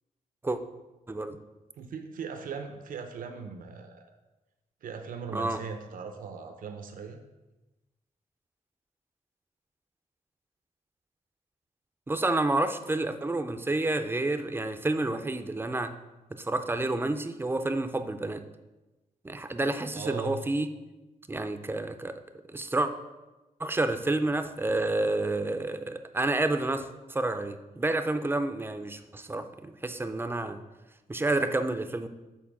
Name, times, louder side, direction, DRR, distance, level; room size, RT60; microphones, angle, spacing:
voice 1, 1.8-4.1 4.8-7.2 19.9-20.4, right 6 dB, 85° right, 5 dB, 0.7 m, -39 dB
voice 2, 12.1-15.9 16.3-18.4 19.2-20.7 21.3-22.2 22.5-22.9 23.6-30.6 31.1-32.1, right 2 dB, 15° right, 9 dB, 0.5 m, -29 dB
7.3 x 4.2 x 6.0 m, 1.1 s
wide cardioid pair, 125°, 14 cm